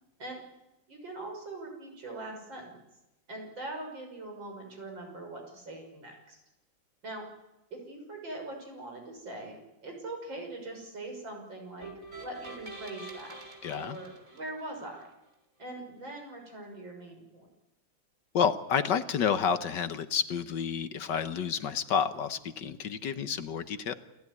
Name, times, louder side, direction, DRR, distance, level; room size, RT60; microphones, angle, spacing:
voice 1, 0.9-2.8 3.3-6.4 7.0-7.3 7.7-11.9 12.2-13.4 13.7-15.0 15.6-17.5, right 2 dB, 70° right, 2 dB, 6.9 m, -42 dB
sound 1, 11.8-15.0, right 2 dB, 40° right, 4.1 m, -46 dB
voice 2, 13.6-14.0 18.3-23.9, left 7 dB, 65° left, 11 dB, 1.7 m, -30 dB
29.0 x 15.5 x 9.7 m, 0.97 s
omnidirectional pair, 2.1 m